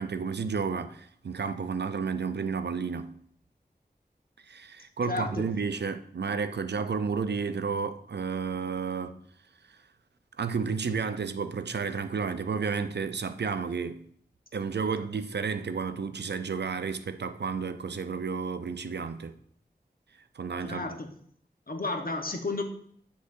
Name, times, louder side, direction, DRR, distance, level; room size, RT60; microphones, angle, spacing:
voice 1, 0.0-3.1 4.5-9.2 10.4-14.0 14.5-19.3 20.4-20.9, right 5 dB, 85° right, 0.5 m, -31 dB
voice 2, 5.1-5.5 20.6-21.1 21.7-22.6, left 3 dB, 60° left, 1.1 m, -32 dB
7.6 x 6.5 x 2.6 m
wide cardioid pair, 40°, 17 cm